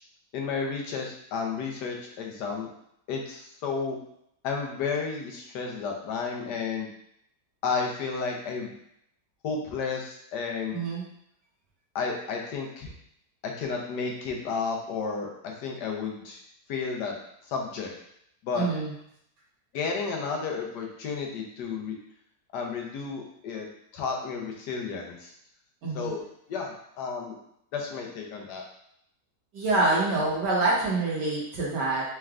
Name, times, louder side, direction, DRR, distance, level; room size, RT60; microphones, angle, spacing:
voice 1, 0.3-2.7 3.1-4.0 4.4-6.9 7.6-8.7 9.4-10.8 11.9-12.9 13.4-16.4 16.7-17.1 17.5-17.9 18.4-18.7 19.7-22.0 22.5-23.7 23.9-25.3 25.9-26.2 26.5-27.4 27.7-28.6, left 5 dB, 80° left, 0 dB, 1.3 m, -32 dB
voice 2, 10.7-11.0 18.6-18.9 25.8-26.1 29.5-32.0, right 2 dB, 80° right, -5 dB, 1.8 m, -26 dB
4.5 x 3.2 x 2.4 m, 0.74 s
omnidirectional pair, 1.8 m